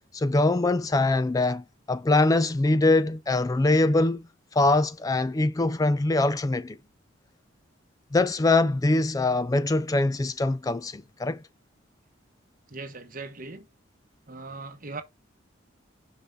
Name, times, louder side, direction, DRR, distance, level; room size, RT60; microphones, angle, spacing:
voice 1, 0.1-4.2 4.5-6.8 8.1-11.4, left 2 dB, 20° left, 0.3 m, -23 dB
voice 2, 12.7-13.7 14.3-15.0, right 3 dB, 45° right, 1.1 m, -39 dB
5.7 x 5.5 x 3.9 m
head